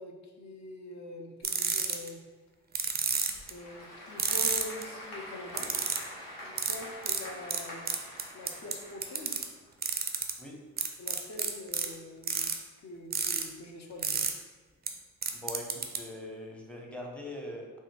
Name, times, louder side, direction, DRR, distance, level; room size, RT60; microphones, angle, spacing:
voice 1, 0.0-2.2 3.5-5.7 6.4-7.9 8.3-9.5 11.0-12.5 12.8-14.2, left 1 dB, 45° left, 2 dB, 0.7 m, -44 dB
sound 1, 1.4-2.1 2.8-3.5 4.2-4.8 5.6-6.0 6.6-6.8 7.1-7.2 7.5-7.6 7.9-8.7 9.0-9.4 9.8-10.3 10.8-11.9 12.2-12.5 13.1-13.4 14.0-14.3 14.9-15.0 15.2-16.0, right 6 dB, 25° right, 0.4 m, -29 dB
Applause / Crowd, 3.1-9.7, left 1 dB, 65° left, 1.0 m, -45 dB
voice 2, 15.3-17.8, left 1 dB, 5° left, -1 dB, 0.7 m, -42 dB
3.4 x 2.0 x 2.9 m, 1.4 s
hypercardioid pair, 45°, 39 cm